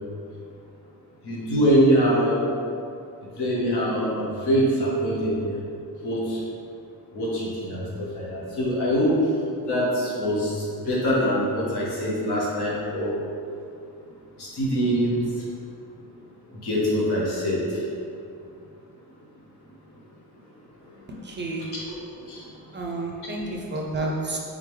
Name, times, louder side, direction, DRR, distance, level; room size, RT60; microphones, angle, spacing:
voice 1, 1.2-2.4 3.4-5.6 6.0-6.4 7.1-9.1 9.7-13.1 14.4-15.2 16.6-17.8 21.9-22.0 22.3-22.4 23.7-23.8, equal, 90° left, -6 dB, 1.2 m, -24 dB
voice 2, 21.2-21.7 22.7-24.4, right 2 dB, 30° right, -1 dB, 0.4 m, -30 dB
3.8 x 3.6 x 3.1 m, 2.6 s
wide cardioid pair, 160°, 38 cm